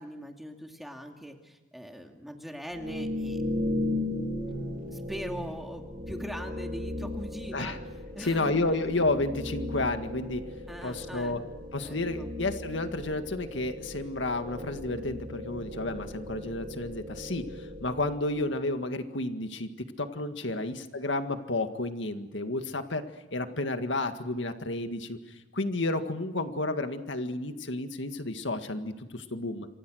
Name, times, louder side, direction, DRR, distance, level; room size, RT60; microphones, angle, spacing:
voice 1, 0.0-3.4 4.9-7.8 8.2-8.8 10.7-11.4 11.8-12.3 20.4-20.6, equal, ahead, 3 dB, 2.5 m, -41 dB
sound 1, 2.7-18.5, left 1 dB, 50° right, 5.9 m, -37 dB
voice 2, 8.2-10.4 10.8-11.4 11.7-19.7 20.0-23.0 23.3-25.2 25.5-29.7, left 2 dB, 85° left, 7 dB, 1.9 m, -31 dB
27.5 x 26.0 x 6.4 m, 1.1 s
head